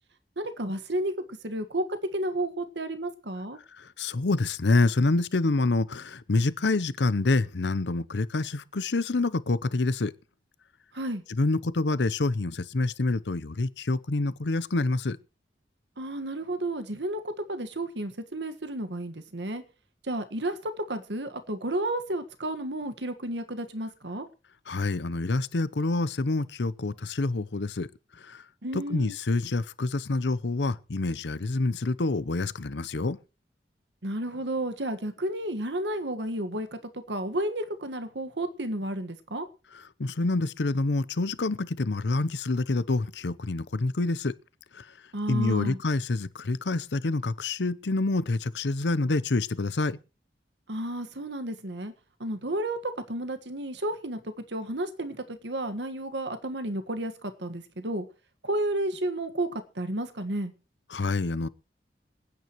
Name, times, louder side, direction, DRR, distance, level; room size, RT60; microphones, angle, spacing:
voice 1, 0.4-1.1 1.4-1.8 2.1-3.6 10.9-11.2 16.0-19.6 20.0-24.2 28.6-29.1 34.0-36.8 37.1-39.5 45.1-45.8 50.7-51.9 52.2-58.1 58.4-60.5, right 1 dB, 80° right, 1.6 m, -32 dB
voice 2, 3.8-10.1 11.3-15.2 24.7-27.9 28.3-28.4 28.7-33.2 40.0-44.3 44.8-44.9 45.3-50.0 60.9-61.5, left 3 dB, 80° left, 0.7 m, -27 dB
26.0 x 9.4 x 3.1 m
head